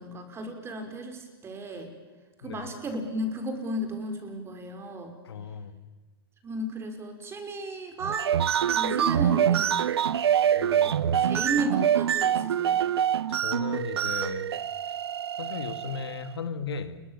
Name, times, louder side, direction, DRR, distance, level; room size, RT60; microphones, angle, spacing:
voice 1, 0.0-1.9 2.4-5.2 6.4-8.3 8.7-9.9 10.8-12.8, right 1 dB, 20° right, 5 dB, 5.4 m, -34 dB
voice 2, 5.2-5.7 10.6-11.4 13.3-14.5 15.4-17.0, left 6 dB, 75° left, 10 dB, 2.1 m, -36 dB
sound 1, 8.0-16.3, right 9 dB, 80° right, 0.9 m, -25 dB
29.5 x 23.0 x 7.3 m, 1.3 s
hypercardioid pair, 120°, 13 cm